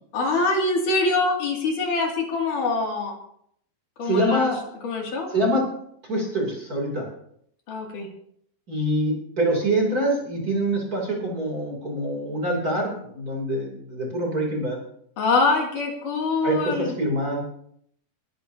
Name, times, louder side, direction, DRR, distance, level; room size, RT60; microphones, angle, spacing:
voice 1, 0.1-3.1 4.0-4.5 4.8-5.3 7.7-8.1 15.2-16.9, left 3 dB, 65° left, 0 dB, 4.1 m, -24 dB
voice 2, 4.0-4.6 5.3-5.6 6.1-7.1 8.7-14.8 16.4-17.4, right 1 dB, 25° right, -1 dB, 3.4 m, -25 dB
21.0 x 13.0 x 2.8 m, 0.68 s
omnidirectional pair, 4.0 m